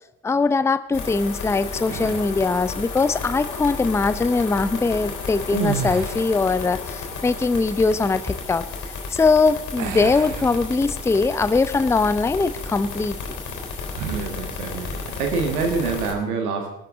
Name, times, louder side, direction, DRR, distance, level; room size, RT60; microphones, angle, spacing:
voice 1, 0.2-8.6 9.1-13.2, left 4 dB, 5° left, 14 dB, 0.5 m, -21 dB
sound 1, 0.9-16.1, left 4 dB, 50° left, 3.6 m, -33 dB
sound 2, 1.8-2.5 5.4-6.5 9.8-11.2 11.7-11.9 13.9-14.4, right 9 dB, 45° right, 1.0 m, -31 dB
voice 2, 14.1-16.7, right 4 dB, 75° right, 4 dB, 1.7 m, -26 dB
20.0 x 13.0 x 3.7 m, 0.79 s
figure-of-eight pair, 50°, 44 cm